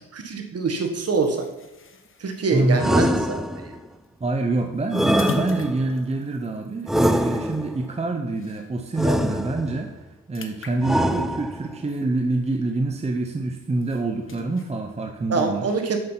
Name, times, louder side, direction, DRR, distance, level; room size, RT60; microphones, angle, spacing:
voice 1, 0.2-1.5 2.2-3.7 15.3-16.0, right 4 dB, 45° right, 4 dB, 1.7 m, -25 dB
sound 1, 0.9-8.9 9.3-9.5 9.8-12.7 13.1-14.7, left 3 dB, 35° left, 1.1 m, -40 dB
voice 2, 2.5-2.8 4.2-9.9 10.3-15.7, right 2 dB, 20° right, 4 dB, 0.8 m, -26 dB
sound 2, 2.8-3.8 4.9-6.0 6.9-7.8 9.0-9.9 10.8-11.8, equal, ahead, 0.3 m, -24 dB
7.8 x 7.4 x 5.8 m, 0.95 s
cardioid pair, 105°, 34 cm